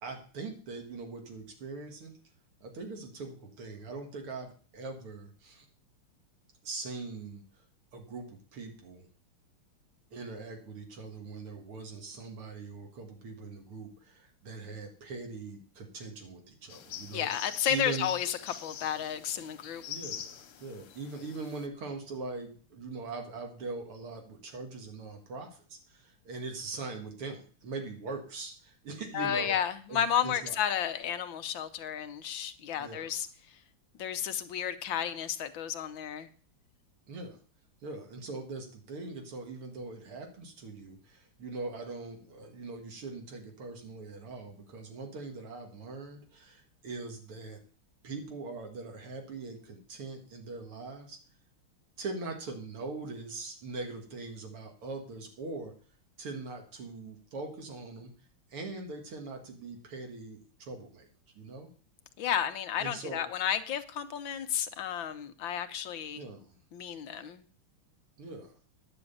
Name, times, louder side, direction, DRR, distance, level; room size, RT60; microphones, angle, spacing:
voice 1, 0.0-2.1 2.6-5.7 6.6-7.4 7.9-9.1 10.1-18.1 19.9-29.5 29.9-30.6 32.8-33.2 37.1-37.4 37.8-47.6 48.0-51.2 52.0-55.7 56.2-58.1 58.5-61.1 61.3-61.7 62.8-63.2 66.2-66.6 68.2-68.5, right 3 dB, 90° right, 3.0 m, -41 dB
sound 1, 16.7-21.7, left 9 dB, 90° left, 1.9 m, -44 dB
voice 2, 17.1-19.8 29.1-33.6 34.0-36.3 62.2-66.2 66.7-67.4, left 9 dB, 70° left, 1.5 m, -32 dB
9.9 x 6.2 x 8.6 m
omnidirectional pair, 2.3 m